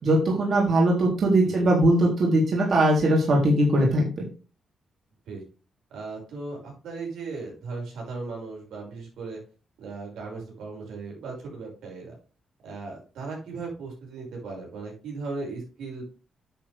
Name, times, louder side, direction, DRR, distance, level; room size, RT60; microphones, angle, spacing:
voice 1, 0.0-4.0, right 1 dB, 50° right, -2 dB, 3.6 m, -20 dB
voice 2, 5.9-9.4 9.8-12.2 12.6-16.0, right 3 dB, 90° right, -1 dB, 5.9 m, -37 dB
10.0 x 7.7 x 3.5 m, 0.34 s
cardioid pair, 135°, 0 cm